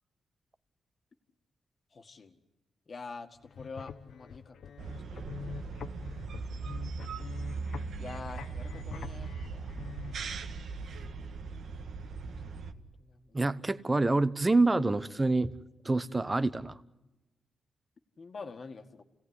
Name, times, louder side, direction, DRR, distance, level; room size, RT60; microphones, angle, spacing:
voice 1, 1.9-2.4 2.9-5.7 7.0-7.4 8.0-10.4 12.8-13.4 18.2-19.0, left 4 dB, 40° left, 1.9 m, -47 dB
sound 1, 3.4-10.1, left 7 dB, 75° left, 0.9 m, -46 dB
sound 2, 4.8-12.7, right 4 dB, 75° right, 1.6 m, -39 dB
voice 2, 13.3-15.5 15.8-16.8, right 2 dB, 20° right, 0.9 m, -27 dB
29.5 x 17.5 x 9.8 m
wide cardioid pair, 135°, 0 cm